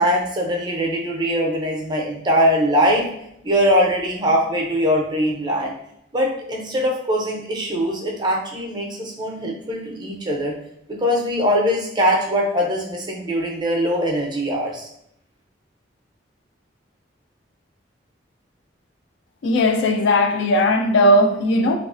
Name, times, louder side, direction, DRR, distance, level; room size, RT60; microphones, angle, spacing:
voice 1, 0.0-3.1 3.4-5.7 6.1-10.5 10.9-14.9, equal, 25° right, 0.4 m, -21 dB
voice 2, 19.4-21.8, left 1 dB, 70° left, 0.3 m, -17 dB
3.1 x 2.3 x 2.4 m
head